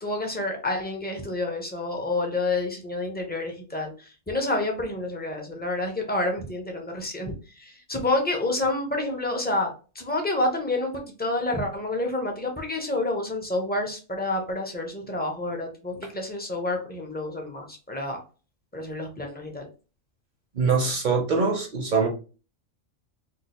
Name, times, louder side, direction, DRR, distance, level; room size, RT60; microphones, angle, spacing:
voice 1, 0.0-9.7 9.9-18.2 18.7-19.7, left 2 dB, 15° left, 0.4 m, -29 dB
voice 2, 20.5-22.1, right 4 dB, 50° right, 0.6 m, -23 dB
2.7 x 2.4 x 4.1 m
omnidirectional pair, 1.4 m